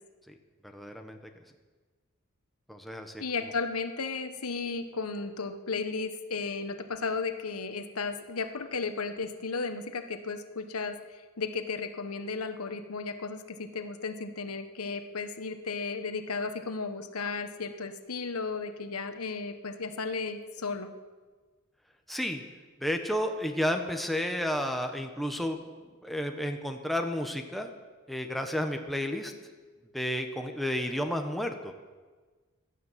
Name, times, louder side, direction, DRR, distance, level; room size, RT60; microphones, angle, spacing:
voice 1, 0.7-1.2 2.7-3.2 22.1-22.4 22.8-25.6 26.0-27.7 28.1-29.3 29.9-31.7, equal, ahead, 4 dB, 1.1 m, -31 dB
voice 2, 3.2-20.9, left 4 dB, 85° left, 8 dB, 1.2 m, -34 dB
16.0 x 11.0 x 7.4 m, 1.4 s
head